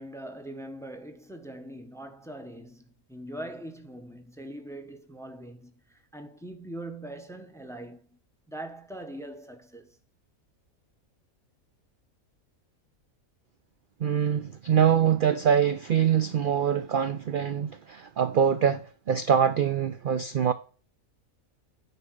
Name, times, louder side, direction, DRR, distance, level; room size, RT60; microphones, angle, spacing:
voice 1, 0.0-8.2 8.5-10.0, right 1 dB, ahead, 0.9 m, -42 dB
voice 2, 14.0-20.5, right 8 dB, 55° right, 0.6 m, -24 dB
9.8 x 4.5 x 6.5 m
omnidirectional pair, 1.5 m